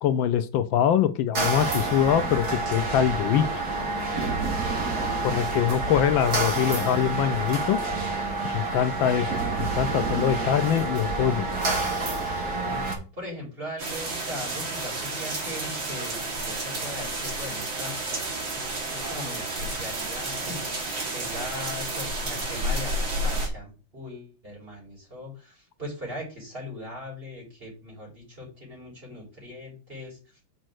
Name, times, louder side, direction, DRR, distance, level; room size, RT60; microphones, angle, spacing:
voice 1, 0.0-3.5 5.2-7.8 8.4-9.3 9.6-11.5, left 9 dB, 80° left, 10 dB, 1.4 m, -23 dB
sound 1, 1.3-12.9, right 3 dB, 50° right, 2.5 m, -28 dB
voice 2, 4.1-5.2 12.7-17.9 18.6-30.4, left 1 dB, 30° right, -3 dB, 3.8 m, -40 dB
sound 2, 13.8-23.5, right 2 dB, 70° right, 2.9 m, -31 dB
6.4 x 4.4 x 6.3 m, 0.34 s
omnidirectional pair, 2.2 m